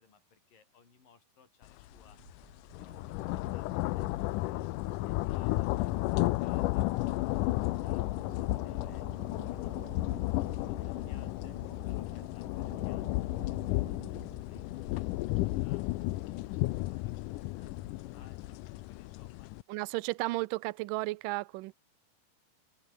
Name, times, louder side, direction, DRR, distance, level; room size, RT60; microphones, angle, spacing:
voice 1, 0.0-4.7 5.0-6.9 7.1-11.5 11.8-15.9 16.1-19.7, left 6 dB, 60° left, 6.8 m, -65 dB
sound 1, 1.8-2.0 2.4-19.6, left 19 dB, 85° left, 1.9 m, -33 dB
sound 2, 1.9-18.9, right 11 dB, 65° right, 3.1 m, -54 dB
voice 2, 19.7-21.7, right 20 dB, 85° right, 2.0 m, -33 dB
omnidirectional pair, 4.4 m